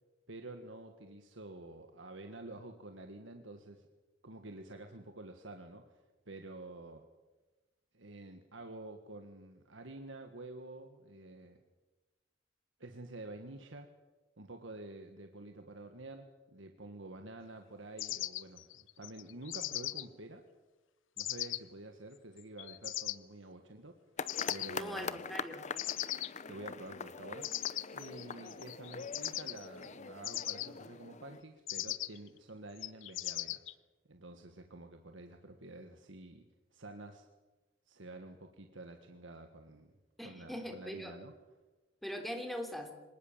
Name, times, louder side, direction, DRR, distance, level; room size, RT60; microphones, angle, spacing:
voice 1, 0.3-3.9 4.2-6.0 6.2-7.1 7.9-11.6 12.8-13.9 14.4-20.4 21.2-23.9 24.5-25.2 26.5-27.6 27.9-33.6 34.1-36.5 36.7-37.3 37.9-39.9 40.2-41.3, right 2 dB, 70° right, 5 dB, 1.7 m, -49 dB
sound 1, 18.0-20.0 21.2-21.6 22.4-23.2 24.3-24.9 25.8-26.3 27.4-29.9 30.2-30.7 31.7-32.3 32.8-33.7, left 15 dB, 75° left, 0.8 m, -39 dB
sound 2, 24.2-31.4, left 5 dB, 40° left, 0.8 m, -43 dB
voice 2, 24.7-25.6 40.2-41.1 42.0-42.9, equal, ahead, 4 dB, 3.4 m, -41 dB
25.5 x 19.0 x 7.3 m, 1.2 s
head